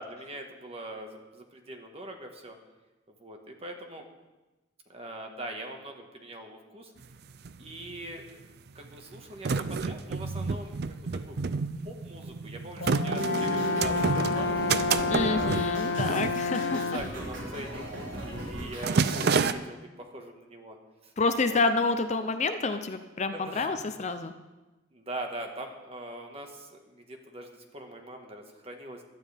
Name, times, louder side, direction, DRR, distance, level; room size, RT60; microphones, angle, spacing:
voice 1, 0.0-2.6 3.2-4.0 4.9-6.9 7.6-8.4 8.7-11.4 11.8-14.6 15.2-17.8 18.2-20.8 21.0-21.1 21.4-21.6 22.2-22.3 23.3-23.7 24.9-29.0, right 1 dB, 30° right, 3 dB, 1.6 m, -42 dB
sound 1, 7.0-7.1 7.3-8.1 8.8-17.1 17.3-17.6 17.9-18.3 18.5-19.5, right 4 dB, 55° right, 0.5 m, -29 dB
Brass instrument, 12.8-17.2, left 4 dB, 80° left, 0.7 m, -29 dB
sound 2, 13.2-19.5, right 1 dB, 80° right, 4.0 m, -39 dB
voice 2, 15.1-16.8 21.2-24.3, left 3 dB, 35° left, 8 dB, 0.6 m, -28 dB
16.5 x 12.0 x 3.5 m, 1.1 s
head